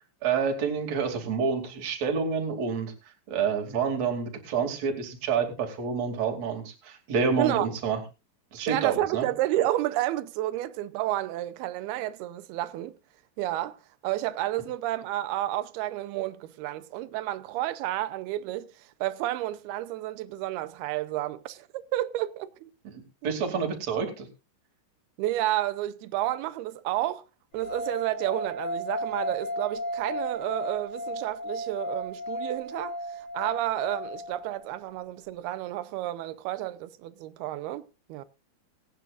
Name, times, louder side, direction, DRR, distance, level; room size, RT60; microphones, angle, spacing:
voice 1, 0.2-2.9 3.3-8.0 8.5-9.3 23.2-24.3, right 6 dB, 40° right, 3.4 m, -28 dB
voice 2, 7.4-7.7 8.7-12.9 13.4-22.7 23.2-23.3 25.2-27.2 27.5-38.2, right 14 dB, 75° right, 2.5 m, -31 dB
sound 1, 27.6-34.7, equal, 40° left, 4.9 m, -34 dB
23.5 x 9.6 x 2.5 m
omnidirectional pair, 5.0 m